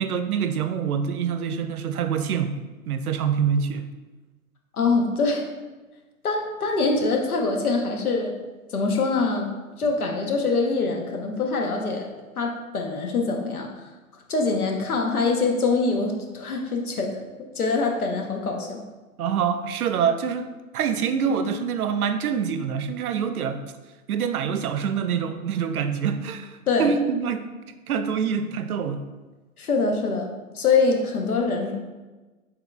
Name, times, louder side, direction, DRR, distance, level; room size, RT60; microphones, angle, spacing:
voice 1, 0.0-3.9 19.2-23.7 24.1-27.4 27.9-29.1, right 7 dB, 80° right, 10 dB, 0.5 m, -26 dB
voice 2, 4.7-5.5 6.2-8.4 8.7-12.1 12.4-13.9 14.3-17.2 17.5-18.9 26.7-26.9 29.6-31.8, left 3 dB, 85° left, 2 dB, 0.9 m, -24 dB
4.5 x 3.8 x 2.2 m, 1.2 s
hypercardioid pair, 120°, 43 cm